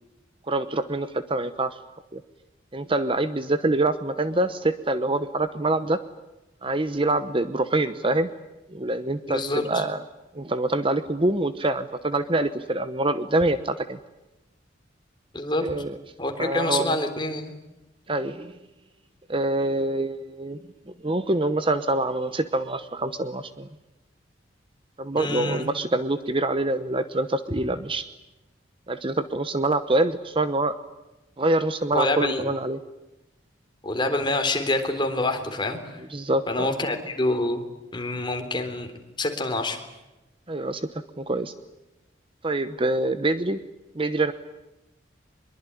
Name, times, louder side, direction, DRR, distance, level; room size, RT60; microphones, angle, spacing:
voice 1, 0.5-1.8 2.1-2.2 2.7-6.0 6.6-8.3 8.7-10.0 10.3-14.0 15.6-16.0 16.4-17.0 18.1-18.5 19.3-20.6 21.0-23.7 25.0-28.1 28.9-30.7 31.4-32.8 36.1-36.7 40.5-40.9 41.2-41.5 42.4-43.6 43.9-44.3, right 2 dB, 30° right, 11 dB, 0.9 m, -25 dB
voice 2, 9.3-9.8 15.3-15.6 16.2-17.4 25.2-25.7 31.9-32.5 33.8-35.9 36.5-37.6 37.9-38.9 39.2-39.8, left 2 dB, 25° left, 5 dB, 3.6 m, -26 dB
24.0 x 22.5 x 9.9 m, 1.0 s
head